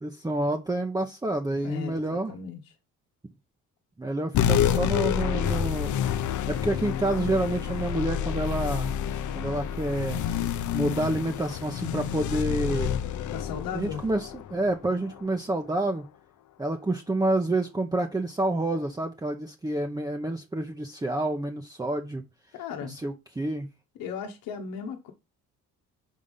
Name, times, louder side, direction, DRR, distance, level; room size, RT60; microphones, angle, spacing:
voice 1, 0.0-2.3 4.0-6.0 6.5-8.9 9.4-10.2 10.7-12.9 13.7-16.1 16.6-22.2 22.8-23.7, right 2 dB, 10° right, 0.8 m, -28 dB
voice 2, 1.6-2.6 13.3-14.0 22.5-23.0 24.0-25.1, left 7 dB, 85° left, 1.1 m, -36 dB
sound 1, 4.3-15.2, left 9 dB, 60° left, 0.7 m, -28 dB
5.6 x 3.6 x 5.2 m
cardioid pair, 75°, 33 cm